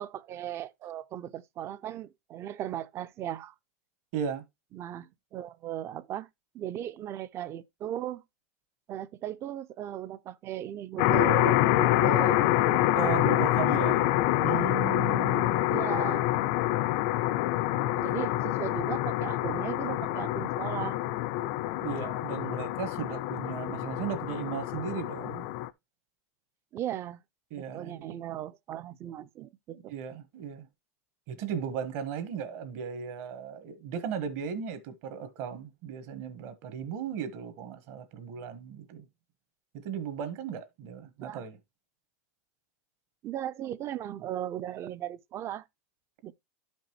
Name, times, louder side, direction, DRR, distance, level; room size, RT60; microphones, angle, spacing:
voice 1, 0.0-3.5 4.7-6.3 6.5-8.2 8.9-14.0 15.6-16.2 18.0-21.0 26.7-27.2 27.5-29.9 41.2-41.4 43.2-45.6 46.2-46.3, right 11 dB, 30° right, 0.5 m, -37 dB
voice 2, 4.1-4.4 12.9-14.0 14.4-15.7 18.0-18.1 21.8-25.5 27.5-28.3 29.7-30.7 31.3-39.1 39.7-41.6, right 8 dB, 55° right, 1.4 m, -36 dB
sound 1, 11.0-25.7, left 15 dB, 55° left, 0.5 m, -27 dB
12.0 x 5.2 x 3.0 m
supercardioid pair, 135°, 8 cm